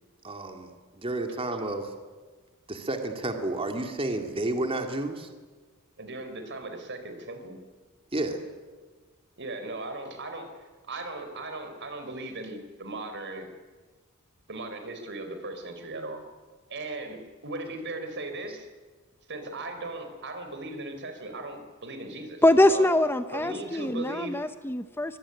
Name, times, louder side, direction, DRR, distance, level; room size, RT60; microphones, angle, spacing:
voice 1, 0.2-1.9 2.7-5.3 8.1-8.4, right 2 dB, 25° right, 5 dB, 2.6 m, -31 dB
voice 2, 6.0-7.6 9.4-10.6 10.9-13.5 14.5-16.2 16.7-18.7 19.3-22.4 22.7-22.9 23.3-24.4, right 2 dB, 60° right, 7 dB, 4.5 m, -37 dB
voice 3, 22.4-25.2, left 1 dB, 10° left, 10 dB, 0.8 m, -23 dB
24.5 x 22.5 x 10.0 m, 1.4 s
head